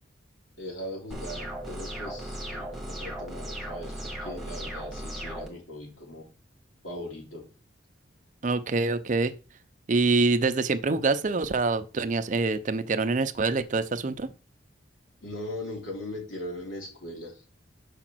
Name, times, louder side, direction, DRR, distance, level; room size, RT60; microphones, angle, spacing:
voice 1, 0.6-6.3 6.8-7.5 15.2-17.4, left 1 dB, 85° left, 2.9 m, -39 dB
sound 1, 1.1-5.5, right 1 dB, ahead, 1.2 m, -36 dB
voice 2, 8.4-9.3 9.9-14.3, right 3 dB, 40° right, 0.5 m, -25 dB
5.0 x 4.9 x 6.1 m
head